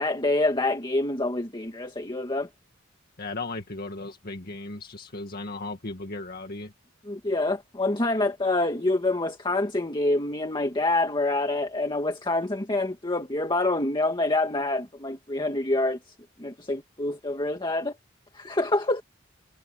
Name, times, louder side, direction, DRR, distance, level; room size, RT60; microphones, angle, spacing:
voice 1, 0.0-2.5 7.1-16.0 16.4-17.9 18.3-19.0, left 2 dB, 25° left, 2.0 m, -26 dB
voice 2, 3.2-6.7, left 2 dB, 50° left, 2.0 m, -36 dB
head